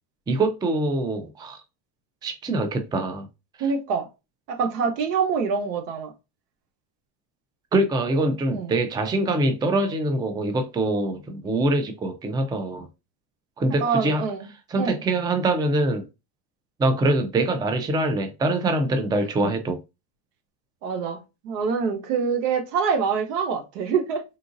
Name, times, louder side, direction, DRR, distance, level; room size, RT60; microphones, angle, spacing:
voice 1, 0.3-1.6 2.2-3.3 7.7-12.9 13.6-14.2 14.7-16.1 16.8-19.8, right 2 dB, 10° right, 0.4 m, -24 dB
voice 2, 3.6-4.1 4.5-6.1 8.5-8.7 13.8-14.5 14.8-15.0 20.8-24.2, right 5 dB, 80° right, 1.1 m, -25 dB
3.8 x 2.4 x 2.5 m
supercardioid pair, 100°, 47 cm